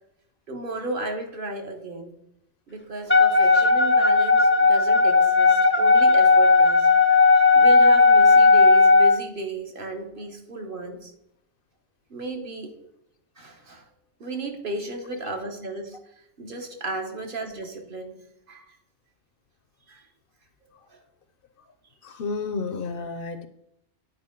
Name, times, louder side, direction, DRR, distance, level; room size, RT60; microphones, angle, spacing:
voice 1, 0.5-2.1 2.7-6.9 7.5-11.1 12.1-12.7 13.4-13.8 14.2-16.0 16.4-18.1 18.5-18.7 19.9-20.0 20.6-21.0, right 2 dB, 55° right, 3 dB, 1.2 m, -34 dB
Wind instrument woodwind instrument, 3.1-9.2, left 3 dB, 20° left, 0.3 m, -16 dB
voice 2, 22.0-23.4, left 4 dB, 60° left, 10 dB, 0.7 m, -31 dB
9.5 x 4.7 x 3.7 m, 0.77 s
omnidirectional pair, 1.1 m